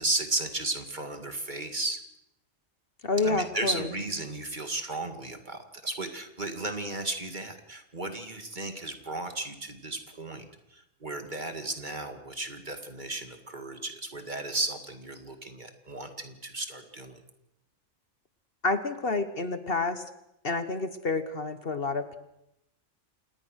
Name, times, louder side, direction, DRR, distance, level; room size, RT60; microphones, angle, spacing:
voice 1, 0.0-2.0 3.2-10.5 10.7-17.2, right 2 dB, 35° right, 7 dB, 2.2 m, -34 dB
voice 2, 3.0-3.9 18.6-20.0 20.4-22.2, left 3 dB, 45° left, 11 dB, 1.4 m, -29 dB
27.5 x 19.0 x 6.4 m, 0.83 s
omnidirectional pair, 1.4 m